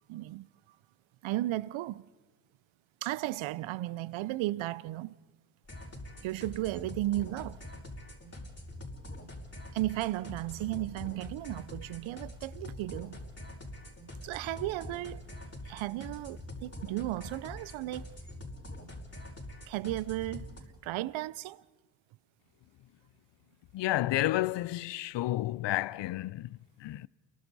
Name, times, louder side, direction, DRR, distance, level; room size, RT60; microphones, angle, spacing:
voice 1, 0.1-0.5 1.2-2.1 3.0-5.2 6.2-7.6 9.7-13.2 14.2-15.2 15.7-18.1 19.7-21.6, right 16 dB, 90° right, 0.6 m, -35 dB
sound 1, 5.6-20.6, left 1 dB, 30° left, 5.4 m, -45 dB
voice 2, 23.7-27.1, left 16 dB, 70° left, 0.5 m, -31 dB
29.0 x 23.5 x 4.0 m
supercardioid pair, 50°, 46 cm